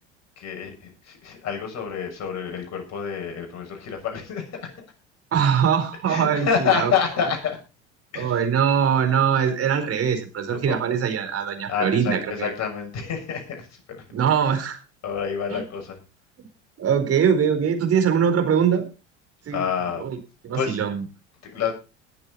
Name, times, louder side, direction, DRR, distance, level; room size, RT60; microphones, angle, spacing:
voice 1, 0.4-4.7 6.1-7.6 8.1-8.4 10.7-10.8 11.7-14.0 15.0-16.0 19.5-20.0 20.5-20.8 21.5-21.7, left 7 dB, 50° left, 3 dB, 6.6 m, -28 dB
voice 2, 5.3-6.9 8.2-12.5 14.1-14.8 15.5-15.6 16.8-18.8 19.5-19.6 20.0-20.2 20.4-21.0, right 7 dB, 40° right, 6 dB, 4.3 m, -22 dB
20.5 x 8.0 x 4.2 m, 0.31 s
hypercardioid pair, 75°, 35 cm